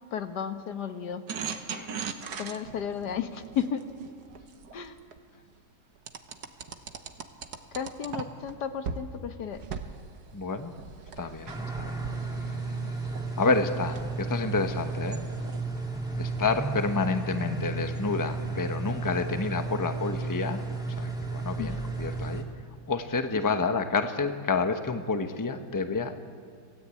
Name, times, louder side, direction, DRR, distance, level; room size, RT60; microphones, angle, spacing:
voice 1, 0.1-1.2 2.4-3.8 4.7-5.0 7.8-9.6 21.6-21.8, left 8 dB, 75° left, 8 dB, 1.7 m, -33 dB
sound 1, 1.3-5.2 6.1-8.5 8.8-9.0 9.5-15.6, right 6 dB, 70° right, 1.7 m, -40 dB
voice 2, 10.3-10.7 11.2-12.0 13.4-15.3 16.1-20.6 21.0-22.5 22.9-26.1, left 4 dB, 15° left, 7 dB, 0.9 m, -29 dB
sound 2, 11.5-22.4, right 3 dB, ahead, 2.3 m, -33 dB
26.5 x 17.0 x 8.6 m, 2.1 s
omnidirectional pair, 1.8 m